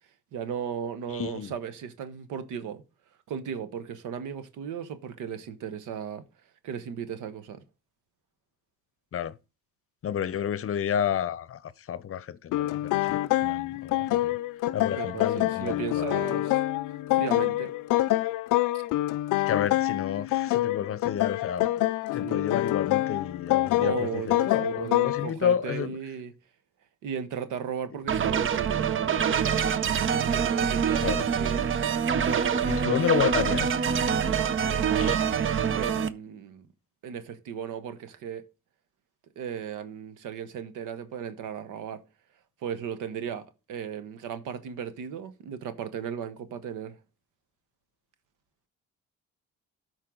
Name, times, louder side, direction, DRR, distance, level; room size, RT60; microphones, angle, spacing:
voice 1, 0.3-2.8 3.3-6.2 6.6-7.6 14.9-16.6 17.1-17.7 18.7-18.8 22.1-22.4 23.8-26.3 27.0-29.6 30.3-31.7 32.3-33.0 34.5-35.2 35.6-36.7 37.0-38.5 39.4-42.0 42.6-47.0, right 8 dB, 85° right, 1.1 m, -36 dB
voice 2, 1.1-1.5 9.1-9.3 10.0-11.6 11.9-14.4 14.7-16.1 19.5-21.7 22.1-26.0 31.0-31.3 32.7-33.7 35.0-35.2, left 9 dB, 50° left, 0.7 m, -30 dB
sound 1, 12.5-25.3, left 16 dB, 90° left, 0.5 m, -26 dB
sound 2, 28.1-36.1, right 7 dB, 45° right, 0.7 m, -25 dB
12.5 x 4.6 x 3.7 m
cardioid pair, 90°, 30 cm